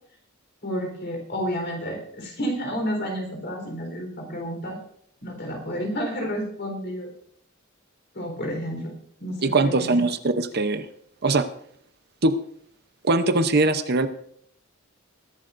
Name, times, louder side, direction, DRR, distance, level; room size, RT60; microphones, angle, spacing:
voice 1, 0.6-4.8 5.2-7.1 8.1-9.9, equal, 55° left, 2 dB, 4.1 m, -30 dB
voice 2, 9.4-10.8 11.2-11.4 12.2-12.3 13.0-14.1, right 2 dB, 50° right, 9 dB, 0.8 m, -21 dB
21.5 x 11.5 x 2.6 m, 0.66 s
head